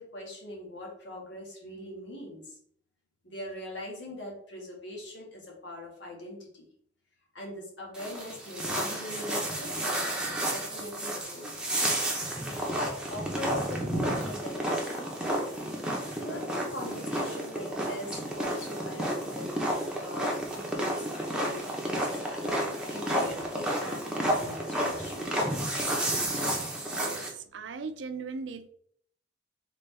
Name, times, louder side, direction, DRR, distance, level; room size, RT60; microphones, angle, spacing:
voice 1, 0.0-2.6 3.2-6.7 7.3-11.7 12.5-15.4 16.1-19.5 20.0-25.3, left 1 dB, 70° left, -2 dB, 1.7 m, -42 dB
sound 1, 7.9-27.3, right 1 dB, 5° right, 0.9 m, -31 dB
voice 2, 26.9-28.7, right 4 dB, 75° right, 10 dB, 0.5 m, -39 dB
4.1 x 3.8 x 3.3 m, 0.64 s
head